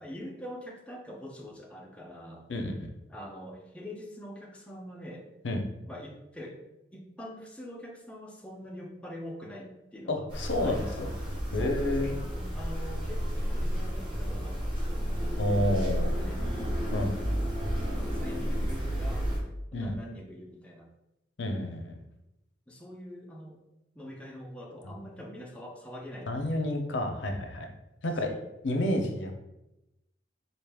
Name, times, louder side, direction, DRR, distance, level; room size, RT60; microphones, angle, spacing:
voice 1, 0.0-2.5 3.1-5.3 5.9-6.6 6.9-10.3 10.6-11.0 11.5-15.0 16.1-16.9 17.9-19.3 19.7-20.9 22.7-23.6 23.9-26.5 28.2-28.5, equal, 5° left, -2 dB, 0.5 m, -44 dB
voice 2, 2.5-2.9 5.4-5.6 10.1-11.1 11.5-12.1 15.4-16.1 16.9-17.1 19.7-19.9 21.4-22.0 26.3-27.7 28.0-28.3 28.6-29.3, left 1 dB, 85° left, 4 dB, 0.6 m, -29 dB
sound 1, 10.3-19.4, equal, 30° right, 1.0 m, -31 dB
4.0 x 2.4 x 3.4 m, 0.92 s
head